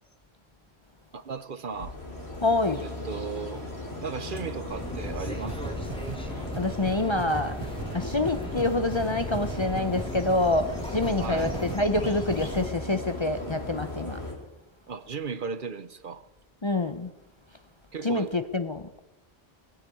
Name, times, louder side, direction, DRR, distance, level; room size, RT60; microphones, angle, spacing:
voice 1, 1.1-1.9 2.8-3.6 4.0-5.8 11.2-11.5 14.9-16.2 17.9-18.3, right 5 dB, 55° right, 0.9 m, -36 dB
sound 1, 1.7-14.3, left 1 dB, 80° left, 4.6 m, -37 dB
voice 2, 2.4-2.8 6.6-7.6 7.9-14.2 16.6-17.1 18.0-19.0, left 2 dB, 30° left, 0.7 m, -26 dB
sound 2, 4.7-12.7, left 1 dB, 5° left, 1.6 m, -37 dB
sound 3, 5.5-10.4 10.7-11.8 12.0-12.1, right 6 dB, 30° right, 0.7 m, -38 dB
19.5 x 8.8 x 8.4 m
omnidirectional pair, 1.1 m